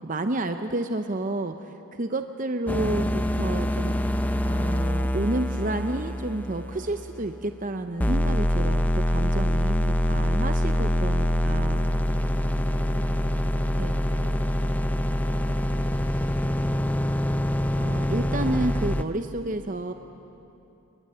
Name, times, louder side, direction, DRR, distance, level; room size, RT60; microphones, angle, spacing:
voice 1, 0.0-4.0 4.4-9.8 10.0-11.8 13.8-14.0 17.8-19.9, right 2 dB, 35° right, 7 dB, 0.7 m, -30 dB
sound 1, 2.7-7.6 8.0-19.0, left 1 dB, 5° left, 0.5 m, -25 dB
voice 2, 9.7-16.7, right 1 dB, 60° left, -8 dB, 7.0 m, -44 dB
29.5 x 21.0 x 7.8 m, 2.9 s
head